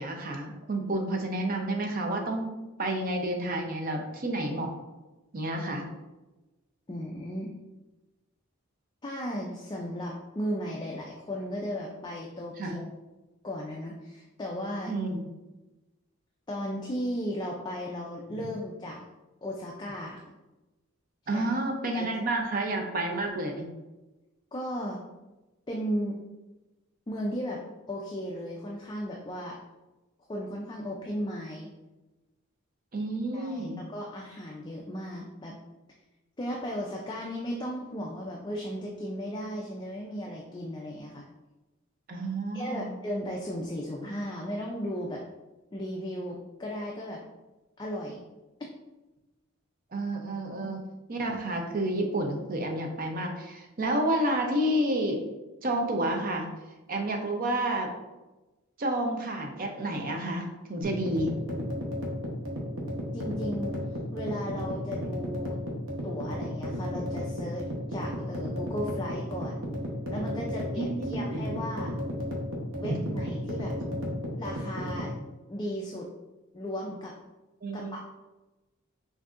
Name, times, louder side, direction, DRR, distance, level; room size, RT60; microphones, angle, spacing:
voice 1, 0.0-2.5 2.8-4.7 5.3-5.9 12.6-12.8 14.9-15.2 21.3-23.7 32.9-33.8 42.1-42.9 49.9-50.8 51.1-55.2 55.6-56.5 56.9-57.9 58.8-61.4 70.8-71.5 72.9-73.1 77.6-78.0, right 1 dB, 40° right, 2 dB, 0.6 m, -30 dB
voice 2, 6.9-7.5 9.0-12.9 13.4-14.9 16.5-19.0 19.4-20.2 21.3-21.5 21.9-22.0 24.5-25.0 25.7-26.2 27.1-29.6 30.3-31.7 33.3-35.6 36.4-41.3 42.5-45.2 45.7-47.2 47.8-48.2 50.5-50.8 63.1-63.8 64.1-65.6 66.0-69.6 70.1-71.9 72.8-73.7 74.4-75.1 75.5-76.1 76.5-77.1 77.7-78.0, equal, 20° left, -1 dB, 0.3 m, -35 dB
sound 1, 60.8-75.1, equal, 75° right, 1.0 m, -34 dB
6.0 x 2.6 x 2.5 m, 1.1 s
head